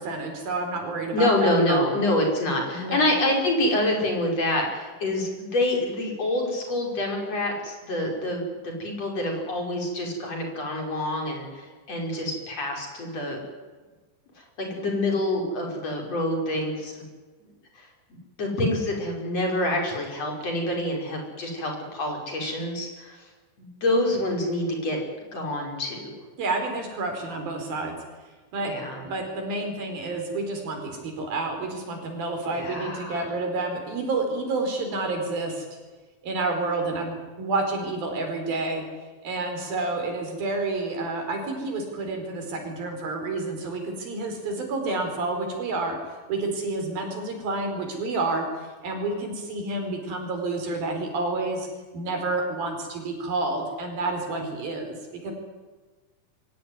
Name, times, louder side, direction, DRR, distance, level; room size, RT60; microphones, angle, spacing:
voice 1, 0.0-1.9 2.7-3.0 26.4-28.0 28.5-35.6 36.2-38.9 39.2-46.0 46.3-48.5 48.8-51.7 51.9-55.0 55.2-55.3, right 3 dB, 90° right, 4 dB, 6.4 m, -29 dB
voice 2, 1.1-13.4 14.6-17.0 18.4-23.2 23.6-25.0 25.3-26.1 28.6-29.0 32.5-33.3, left 1 dB, 45° left, 1 dB, 6.2 m, -26 dB
23.0 x 17.5 x 9.7 m, 1.3 s
omnidirectional pair, 4.1 m